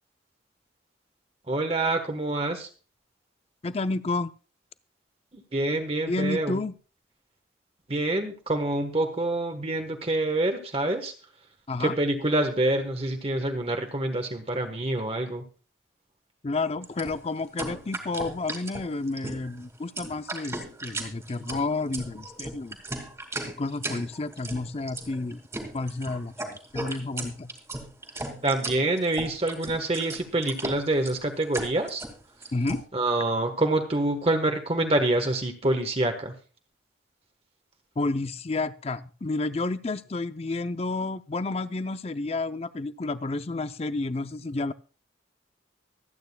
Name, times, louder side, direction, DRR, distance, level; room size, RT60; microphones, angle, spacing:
voice 1, 1.5-2.7 5.3-6.6 7.9-11.1 11.8-15.4 28.4-32.0 32.9-36.3, right 2 dB, 35° right, 5 dB, 1.3 m, -26 dB
voice 2, 3.6-4.3 6.1-6.7 11.7-12.0 16.4-22.8 23.6-25.4 25.7-27.5 32.5-32.8 38.0-44.7, left 3 dB, 35° left, 13 dB, 0.5 m, -30 dB
sound 1, 16.8-32.8, right 2 dB, 15° right, 2.1 m, -36 dB
24.5 x 9.1 x 2.3 m, 0.36 s
head